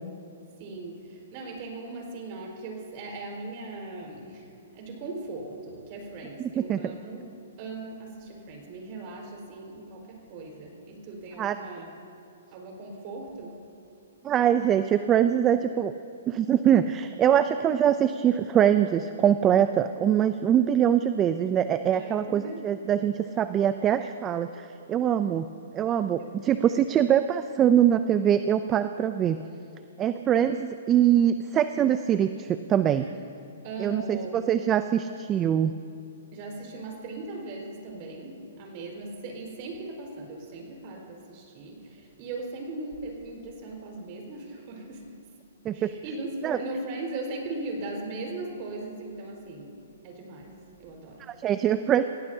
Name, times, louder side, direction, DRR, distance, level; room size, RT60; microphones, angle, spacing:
voice 1, 0.6-7.3 7.6-11.9 12.5-13.6 21.9-22.6 26.1-26.7 32.8-33.2 33.6-34.4 36.3-45.2 45.7-50.5 50.8-51.2, right 2 dB, 40° right, 0 dB, 4.9 m, -39 dB
voice 2, 6.6-6.9 11.4-11.6 14.2-15.9 16.3-25.5 25.7-29.4 30.0-33.1 33.8-34.2 34.5-35.7 45.6-45.9 46.4-46.6 51.2-52.0, right 9 dB, 20° right, 10 dB, 0.5 m, -23 dB
29.0 x 17.0 x 2.8 m, 2.6 s
hypercardioid pair, 135°, 0 cm